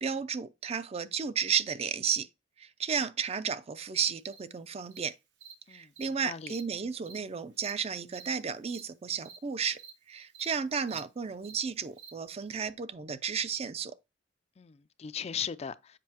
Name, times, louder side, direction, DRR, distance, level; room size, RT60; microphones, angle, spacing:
voice 1, 0.0-2.3 2.6-5.2 5.7-9.8 10.1-13.9, right 6 dB, 35° right, 0.4 m, -33 dB
Cricket, 4.3-4.4 4.9-5.0 5.4-5.5 6.0-6.1 6.4-6.6 7.0-7.2 7.6-7.7 8.1-8.3 8.6-8.8 9.2-9.4 9.7-9.9 10.3-10.5 10.8-11.0 11.4-11.6 12.0-12.1, right 6 dB, 85° right, 1.5 m, -49 dB
voice 2, 6.2-6.5 14.6-16.0, left 8 dB, 35° left, 0.4 m, -38 dB
7.5 x 5.2 x 2.9 m
head